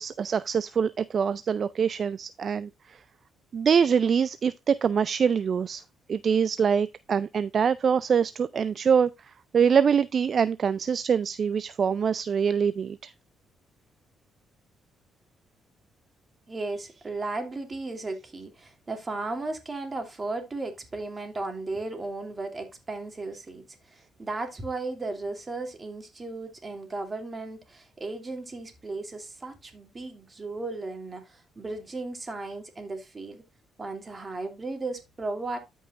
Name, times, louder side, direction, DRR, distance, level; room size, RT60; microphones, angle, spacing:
voice 1, 0.0-3.0 3.5-5.8 6.1-9.1 9.5-13.1, right 7 dB, 50° right, 0.4 m, -24 dB
voice 2, 16.5-33.4 33.8-35.6, right 3 dB, 30° right, 2.7 m, -35 dB
13.5 x 5.5 x 2.5 m
cardioid pair, 90°, 0 cm